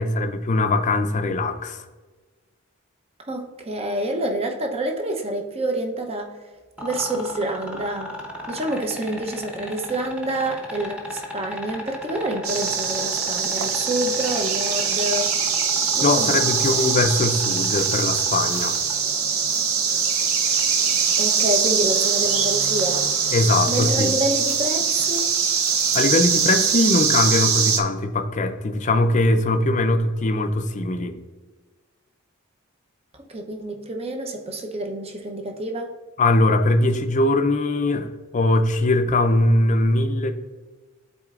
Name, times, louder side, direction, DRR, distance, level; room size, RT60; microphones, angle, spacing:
voice 1, 0.0-1.8 16.0-18.8 23.3-24.1 25.9-31.2 36.2-40.3, left 2 dB, 35° left, 7 dB, 0.5 m, -21 dB
voice 2, 3.3-6.3 6.8-8.2 8.5-15.3 16.0-16.8 21.2-23.1 23.7-25.3 33.3-35.9, right 1 dB, 30° right, 3 dB, 0.7 m, -27 dB
sound 1, 6.8-18.9 20.6-20.7, left 1 dB, 5° right, 1.0 m, -35 dB
sound 2, 12.4-27.8, right 6 dB, 75° right, 0.7 m, -22 dB
12.0 x 4.2 x 2.4 m, 1.3 s
head